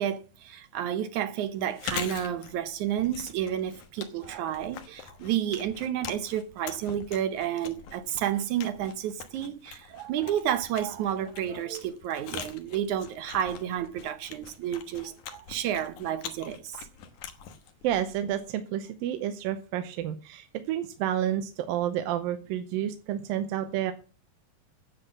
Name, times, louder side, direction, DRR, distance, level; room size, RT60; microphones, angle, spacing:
voice 1, 0.0-16.8, right 10 dB, 70° right, 2.1 m, -31 dB
Chewing mastication, 1.6-18.5, left 8 dB, 65° left, 2.5 m, -43 dB
voice 2, 17.8-23.9, right 11 dB, 85° right, 2.6 m, -30 dB
10.0 x 8.3 x 7.2 m
omnidirectional pair, 4.1 m